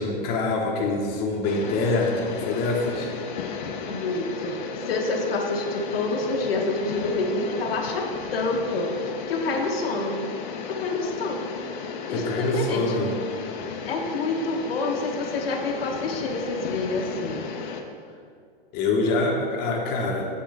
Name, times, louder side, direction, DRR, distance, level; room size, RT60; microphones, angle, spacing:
voice 1, 0.0-3.1 12.1-13.1 18.7-20.3, left 3 dB, 35° left, -1 dB, 1.1 m, -25 dB
sound 1, 1.4-17.8, left 6 dB, 50° left, 0.7 m, -34 dB
voice 2, 3.9-8.9 9.3-10.2 10.7-11.5 12.1-13.1 13.9-17.4, left 2 dB, 80° left, 1 dB, 1.1 m, -28 dB
7.5 x 6.4 x 3.4 m, 2.2 s
hypercardioid pair, 140°, 29 cm